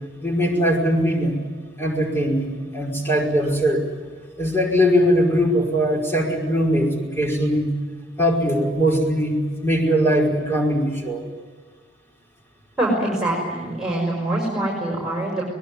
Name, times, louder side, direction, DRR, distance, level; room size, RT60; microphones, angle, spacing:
voice 1, 0.2-1.4 1.8-3.8 4.4-7.7 8.2-11.2, equal, 15° left, 0 dB, 5.2 m, -20 dB
voice 2, 12.8-15.4, right 1 dB, 5° right, -3 dB, 6.2 m, -24 dB
22.5 x 21.0 x 9.8 m, 1.5 s
head